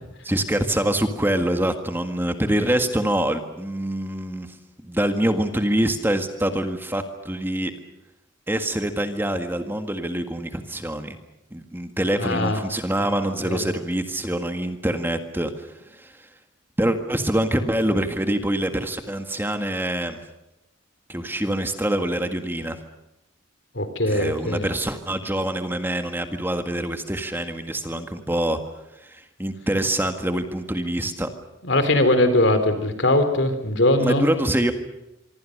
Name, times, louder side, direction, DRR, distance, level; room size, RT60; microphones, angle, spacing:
voice 1, 0.3-4.6 4.8-7.7 8.5-11.2 11.5-16.3 16.8-20.2 21.1-22.8 24.1-28.6 29.0-31.3 34.0-34.7, right 1 dB, 10° right, 7 dB, 1.7 m, -25 dB
voice 2, 12.2-12.6 13.4-13.6 23.8-24.7 31.6-34.3, left 1 dB, 60° left, 9 dB, 3.8 m, -21 dB
25.5 x 25.0 x 6.6 m, 0.92 s
head